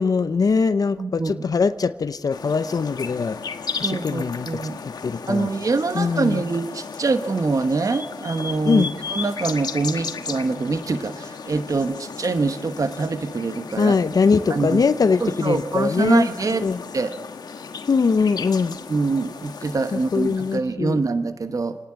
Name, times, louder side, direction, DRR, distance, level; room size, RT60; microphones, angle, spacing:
voice 1, 0.0-3.4 3.8-4.5 5.0-5.5 5.9-6.4 8.7-8.9 13.8-16.3 16.6-16.8 17.9-18.8 19.9-21.0, left 5 dB, 65° left, 0.7 m, -21 dB
voice 2, 1.0-1.5 3.7-4.8 5.3-8.8 9.1-13.9 14.5-14.8 15.2-16.7 16.9-17.1 18.9-21.8, right 3 dB, 55° right, 1.2 m, -24 dB
sound 1, 2.3-20.6, left 5 dB, 80° left, 1.3 m, -35 dB
29.5 x 10.5 x 8.7 m
cardioid pair, 50°, 7 cm